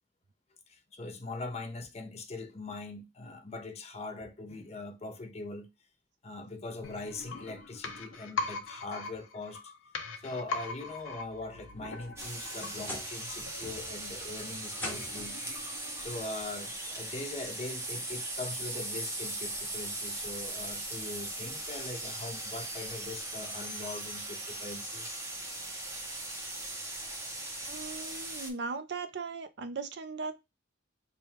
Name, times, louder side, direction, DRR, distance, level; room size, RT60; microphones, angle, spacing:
voice 1, 0.7-5.7 6.2-9.6 10.2-15.4 16.0-25.2, left 2 dB, 30° left, 0.6 m, -41 dB
sound 1, 6.8-16.5 16.8-16.9, left 4 dB, 80° left, 0.6 m, -42 dB
sound 2, 11.7-13.3 13.6-14.1 14.7-15.4 16.6-16.7 17.3-17.4 19.0-19.1, left 1 dB, 10° left, 0.9 m, -43 dB
sound 3, 12.2-28.5, right 2 dB, 15° right, 0.7 m, -39 dB
voice 2, 27.6-30.4, right 4 dB, 55° right, 0.5 m, -38 dB
3.4 x 2.2 x 4.2 m
head